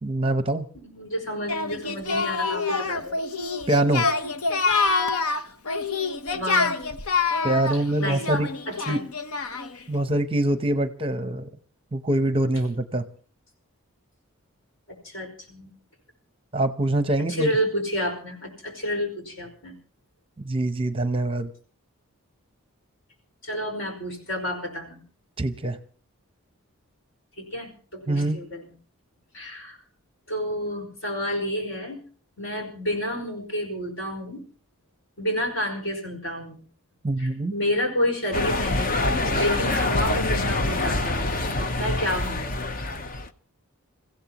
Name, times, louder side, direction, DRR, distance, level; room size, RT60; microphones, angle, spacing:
voice 1, 0.0-0.7 3.7-4.1 7.4-8.5 8.9-9.0 9.9-11.5 11.9-13.1 16.5-17.5 20.4-21.5 25.4-25.8 28.1-28.4 37.0-37.5, right 1 dB, 25° right, 10 dB, 0.8 m, -24 dB
voice 2, 0.7-3.2 6.3-6.7 7.7-9.0 15.0-15.7 17.3-19.8 23.4-25.0 27.4-28.6 29.3-29.8 30.3-32.0 32.4-34.4 35.2-36.6 37.2-42.5, equal, 55° left, 3 dB, 5.4 m, -30 dB
Singing, 1.5-9.8, left 4 dB, 85° left, 1.0 m, -26 dB
sound 1, 38.3-43.3, left 2 dB, 40° left, 0.8 m, -25 dB
29.5 x 15.5 x 3.0 m, 0.41 s
head